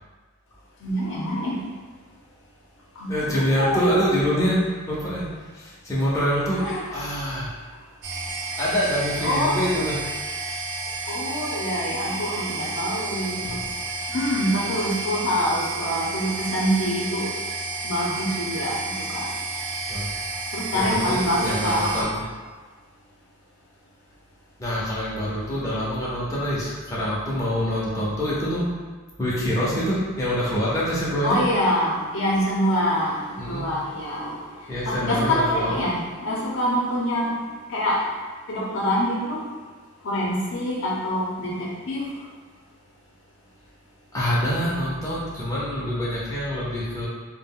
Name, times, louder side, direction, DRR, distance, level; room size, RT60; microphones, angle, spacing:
voice 1, 0.8-1.6 3.0-4.0 6.5-6.9 9.2-9.6 11.1-13.6 14.1-17.3 17.8-19.2 20.5-22.1 31.2-33.2 33.5-34.3 34.9-37.3 37.7-38.0 38.5-39.4 40.0-42.0, equal, 60° left, -4 dB, 0.6 m, -25 dB
voice 2, 3.1-5.3 5.5-7.5 8.6-10.0 13.4-13.7 19.9-20.1 20.7-22.2 24.6-28.7 29.2-31.4 33.4-33.7 34.7-35.7 44.1-47.1, equal, 15° left, -8 dB, 0.5 m, -25 dB
sound 1, 8.0-22.0, right 3 dB, 50° right, 0.4 m, -31 dB
2.3 x 2.1 x 3.5 m, 1.4 s
head